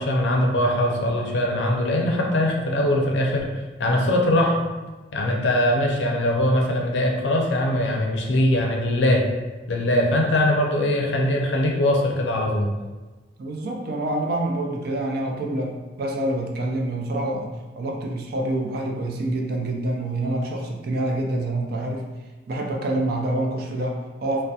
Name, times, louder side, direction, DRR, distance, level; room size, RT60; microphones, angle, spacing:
voice 1, 0.0-3.5 3.8-4.6 5.1-9.2 9.7-12.7, left 1 dB, 70° left, 0 dB, 0.4 m, -21 dB
voice 2, 13.4-22.0 22.5-24.4, right 1 dB, 55° right, 1 dB, 0.3 m, -27 dB
2.7 x 2.0 x 2.3 m, 1.2 s
head